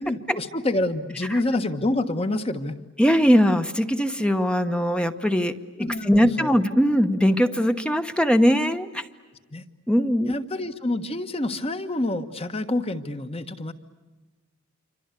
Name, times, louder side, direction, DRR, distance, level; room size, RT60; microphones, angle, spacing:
voice 1, 0.0-2.8 5.8-6.5 9.5-9.6 10.2-13.7, left 1 dB, 30° left, 9 dB, 1.4 m, -27 dB
voice 2, 3.0-9.0 9.9-10.3, equal, 5° left, 8 dB, 1.0 m, -21 dB
28.5 x 25.0 x 8.3 m, 1.2 s
head